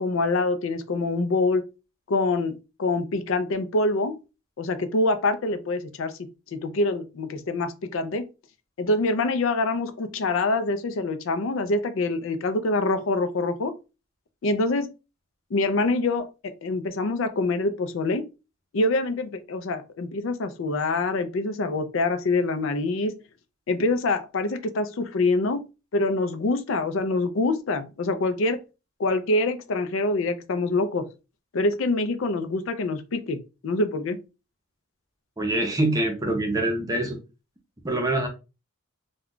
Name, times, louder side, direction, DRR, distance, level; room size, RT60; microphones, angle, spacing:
voice 1, 0.0-1.6 2.1-4.1 4.6-6.1 6.5-8.2 8.8-13.7 14.4-14.9 15.5-18.3 18.7-23.1 23.7-25.6 25.9-28.6 29.0-31.0 31.5-33.4 33.6-34.2, left 2 dB, 65° left, 0.4 m, -25 dB
voice 2, 35.4-37.2 37.8-38.3, right 1 dB, 15° right, 0.5 m, -24 dB
2.3 x 2.2 x 3.6 m
head